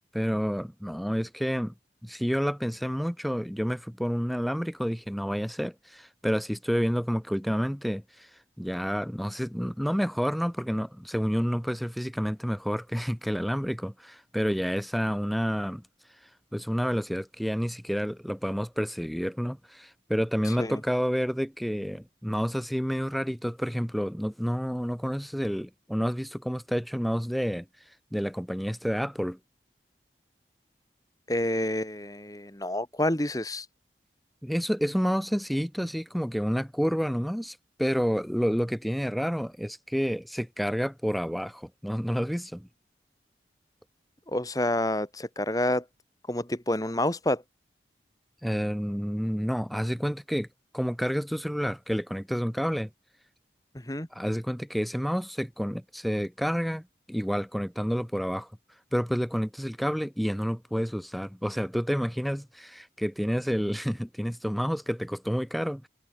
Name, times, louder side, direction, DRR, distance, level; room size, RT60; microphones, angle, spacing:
voice 1, 0.1-1.7 2.0-8.3 8.6-15.8 16.5-27.7 28.1-29.4 34.4-42.7 48.4-50.5 50.7-52.9 54.1-58.5 58.9-65.9, equal, ahead, 2.5 m, -29 dB
voice 2, 20.5-20.8 31.3-33.7 44.3-45.8 46.3-47.4 53.9-54.1, left 1 dB, 20° left, 2.1 m, -28 dB
head